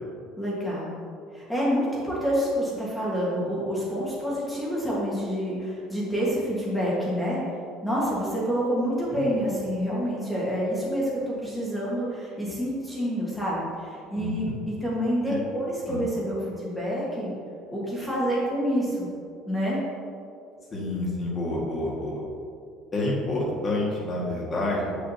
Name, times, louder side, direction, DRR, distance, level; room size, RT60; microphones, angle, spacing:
voice 1, 0.4-0.9 1.3-7.4 7.8-17.3 17.7-19.1 19.5-19.8, equal, 5° left, -6 dB, 1.5 m, -27 dB
voice 2, 14.1-14.5 15.3-15.4 15.9-16.0 20.7-22.2 22.9-25.0, left 2 dB, 25° left, -5 dB, 1.7 m, -28 dB
7.5 x 6.9 x 2.8 m, 2.4 s
cardioid pair, 145°, 0 cm